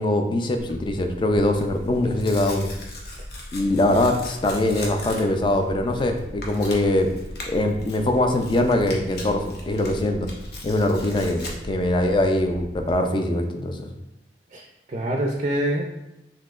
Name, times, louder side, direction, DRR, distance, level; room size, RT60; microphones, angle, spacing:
voice 1, 0.0-2.7 3.5-7.1 7.5-10.3 10.6-13.9, left 1 dB, 30° left, 5 dB, 0.4 m, -22 dB
Tearing, 0.6-12.9, left 1 dB, 60° left, 0.8 m, -37 dB
voice 2, 14.5-15.9, right 1 dB, 40° right, 0 dB, 0.4 m, -26 dB
5.8 x 2.7 x 2.4 m, 0.91 s
head